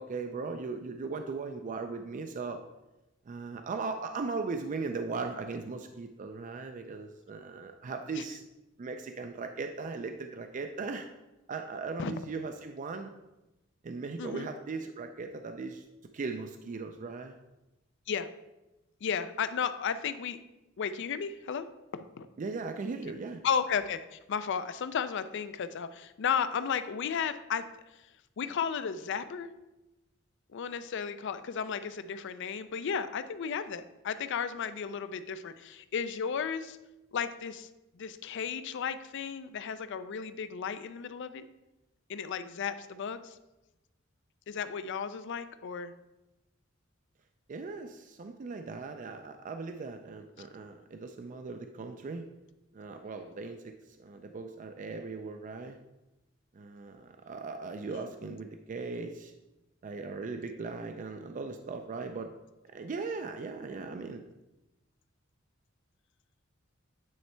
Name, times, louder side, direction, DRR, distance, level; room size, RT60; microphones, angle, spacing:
voice 1, 0.0-2.6 3.3-8.4 8.8-11.1 11.5-13.1 13.8-15.8 16.1-17.4 22.4-23.4 47.5-52.3 52.7-55.8 56.5-59.3 59.8-62.3 62.7-64.2, right 4 dB, 40° right, 6 dB, 0.4 m, -38 dB
voice 2, 19.0-20.4 20.8-21.7 21.9-22.3 23.4-27.6 28.4-29.5 30.5-36.8 37.1-37.7 37.9-41.4 42.1-43.4 44.5-45.9 57.9-58.4, left 7 dB, 60° left, 12 dB, 0.4 m, -34 dB
9.4 x 3.3 x 4.4 m, 0.99 s
head